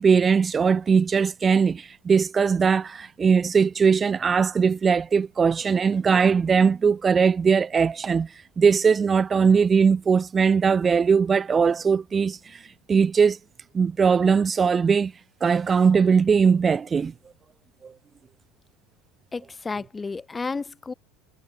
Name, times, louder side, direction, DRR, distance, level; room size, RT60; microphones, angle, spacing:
voice 1, 0.0-12.6 12.9-13.4 13.7-15.1 15.4-17.1 17.8-17.9, right 6 dB, 30° right, 2.0 m, -20 dB
voice 2, 19.3-20.9, left 4 dB, 20° left, 3.7 m, -32 dB
hypercardioid pair, 80°, 0 cm